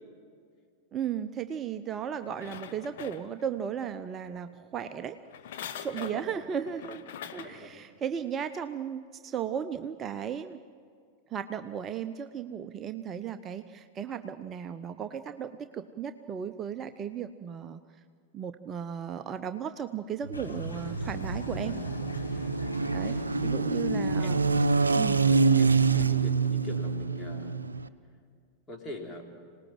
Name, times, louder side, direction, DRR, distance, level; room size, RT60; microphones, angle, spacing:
voice 1, 0.9-5.2 5.8-7.0 7.3-10.6 11.3-17.8 18.3-21.8 22.9-24.4 24.9-25.2, right 8 dB, 25° right, 9 dB, 0.6 m, -35 dB
sound 1, 2.2-3.7 5.2-7.7 8.2-8.3, left 9 dB, 55° left, 1.1 m, -43 dB
voice 2, 6.0-6.4 7.4-7.8 23.1-23.9 24.2-24.5 25.6-27.5 28.7-29.3, left 2 dB, 20° left, 2 dB, 3.2 m, -43 dB
sound 2, 20.2-27.9, right 4 dB, 75° right, 0.6 m, -26 dB
sound 3, 20.3-26.2, left 1 dB, 80° left, 2.5 m, -40 dB
26.5 x 18.5 x 7.7 m, 2.1 s
figure-of-eight pair, 90°, 0 cm